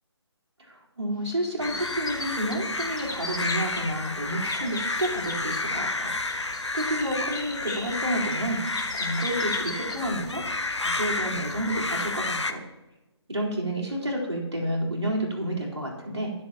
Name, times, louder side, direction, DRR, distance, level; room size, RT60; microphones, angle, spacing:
voice 1, 0.6-10.4 10.8-12.6 13.3-16.3, right 1 dB, 70° right, -1 dB, 4.1 m, -30 dB
sound 1, 1.3-2.2 2.5-5.6 6.0-9.9 10.4-10.7, left 3 dB, 45° left, 2.9 m, -37 dB
sound 2, 1.6-12.5, left 3 dB, 75° left, 1.1 m, -31 dB
23.5 x 7.8 x 3.0 m, 1.0 s
figure-of-eight pair, 150°, 15 cm